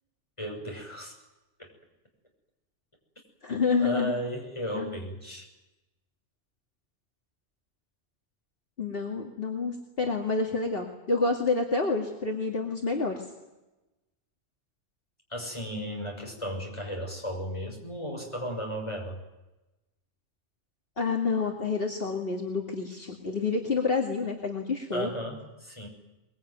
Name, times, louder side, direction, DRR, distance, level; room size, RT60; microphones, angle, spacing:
voice 1, 0.4-1.2 1.6-1.7 3.8-5.5 15.3-19.2 24.9-25.9, equal, 25° left, 1 dB, 6.3 m, -35 dB
voice 2, 3.4-4.1 4.7-5.0 8.8-13.3 21.0-25.1, left 4 dB, 55° left, 0 dB, 2.5 m, -28 dB
23.5 x 22.0 x 9.4 m, 1.0 s
omnidirectional pair, 1.2 m